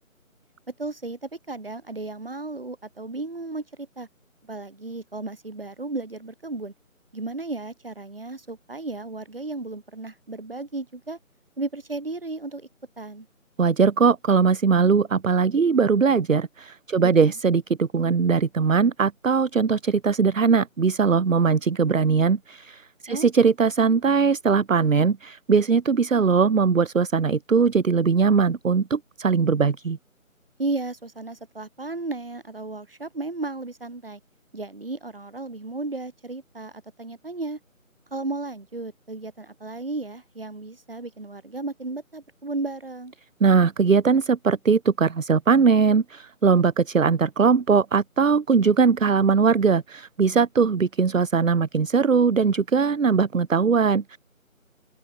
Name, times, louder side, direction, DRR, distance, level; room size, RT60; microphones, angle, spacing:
voice 1, 0.8-4.1 4.4-6.7 7.1-11.2 11.6-12.7 13.0-13.3 17.0-17.3 23.1-23.3 30.6-34.2 34.5-37.6 38.1-43.1, right 2 dB, 40° right, 4.3 m, -34 dB
voice 2, 13.6-30.0 43.4-54.2, right 5 dB, 65° right, 0.8 m, -20 dB
open air
figure-of-eight pair, 180°, 41 cm